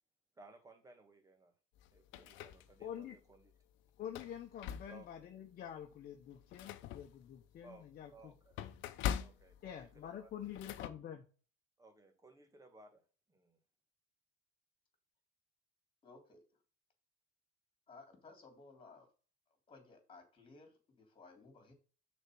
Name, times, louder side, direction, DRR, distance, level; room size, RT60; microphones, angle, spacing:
voice 1, 0.4-1.5 1.9-3.5 4.9-5.3 7.6-7.9 8.1-8.7 9.2-10.3 11.8-13.0 13.3-13.6, right 2 dB, 15° right, 6 dB, 1.8 m, -60 dB
sound 1, 1.8-3.0 3.5-3.6 4.0-5.3 5.7-5.9 6.2-10.9, left 10 dB, 70° left, 0.9 m, -43 dB
voice 2, 2.8-3.2 4.0-8.3 9.6-11.2, left 9 dB, 45° left, 3 dB, 1.1 m, -47 dB
voice 3, 16.0-16.6 17.9-19.1 19.7-21.7, left 3 dB, 25° left, 4 dB, 3.3 m, -58 dB
6.4 x 4.4 x 6.3 m, 0.37 s
cardioid pair, 130°, 21 cm